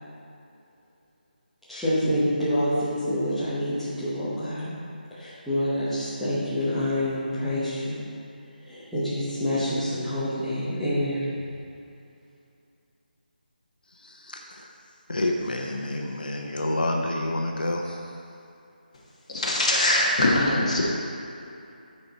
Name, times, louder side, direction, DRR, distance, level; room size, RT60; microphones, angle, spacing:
voice 1, 1.7-4.7 5.1-8.0 8.6-11.3, equal, ahead, -16 dB, 0.8 m, -27 dB
voice 2, 14.0-14.7 15.1-18.0, left 1 dB, 70° left, 1 dB, 0.8 m, -28 dB
voice 3, 19.3-20.8, left 1 dB, 40° left, -3 dB, 1.4 m, -22 dB
10.0 x 4.3 x 4.2 m, 2.6 s
figure-of-eight pair, 175°, 5 cm